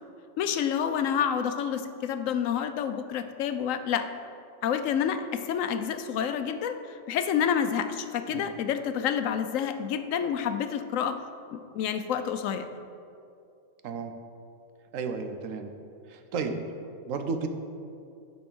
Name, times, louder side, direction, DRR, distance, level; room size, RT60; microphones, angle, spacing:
voice 1, 0.4-4.1 4.6-11.2 11.5-12.7, left 8 dB, 85° left, 9 dB, 1.0 m, -28 dB
voice 2, 13.8-14.1 14.9-15.7 16.1-16.6 17.1-17.5, right 5 dB, 85° right, 7 dB, 1.1 m, -32 dB
10.0 x 4.4 x 6.1 m, 2.4 s
omnidirectional pair, 1.3 m